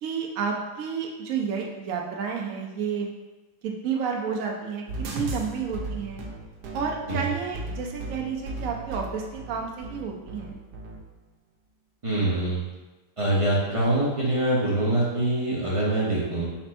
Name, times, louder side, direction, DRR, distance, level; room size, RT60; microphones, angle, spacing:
voice 1, 0.0-3.1 3.6-6.2 6.7-10.6, right 6 dB, 65° right, 0 dB, 0.9 m, -31 dB
sound 1, 4.9-11.0, right 2 dB, 90° right, 1.3 m, -36 dB
voice 2, 12.0-12.6 13.2-16.5, right 1 dB, 35° right, -7 dB, 0.5 m, -24 dB
4.2 x 2.5 x 4.3 m, 1.1 s
omnidirectional pair, 1.8 m